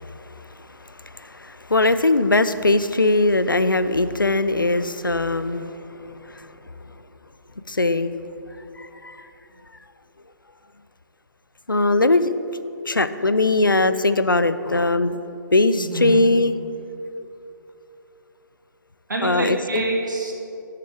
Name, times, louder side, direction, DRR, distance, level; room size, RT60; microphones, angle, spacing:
voice 1, 1.2-5.7 6.3-6.4 7.7-8.1 8.8-9.2 11.7-12.3 12.9-15.2 15.5-16.5 19.2-19.8, left 2 dB, 90° left, 12 dB, 0.5 m, -20 dB
voice 2, 15.7-16.2 19.1-20.3, right 2 dB, 70° right, -1 dB, 2.1 m, -26 dB
14.5 x 6.7 x 3.5 m, 2.9 s
figure-of-eight pair, 135°, 11 cm